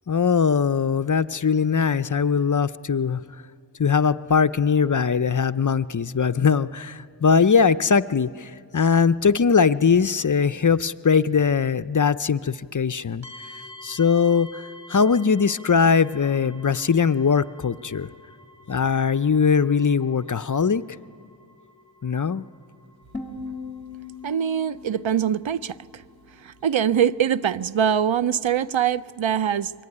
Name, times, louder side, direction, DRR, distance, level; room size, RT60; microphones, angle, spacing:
voice 1, 0.1-3.2 3.8-13.3 13.8-18.1 18.7-20.8 22.0-22.4, left 6 dB, 45° left, 0.6 m, -21 dB
sound 1, 13.2-28.9, left 1 dB, 35° right, 3.9 m, -50 dB
sound 2, 23.1-26.1, left 4 dB, 25° left, 2.1 m, -39 dB
voice 2, 24.2-26.0 26.4-29.7, right 8 dB, 85° right, 0.6 m, -23 dB
25.0 x 22.5 x 9.9 m
wide cardioid pair, 55°, 45 cm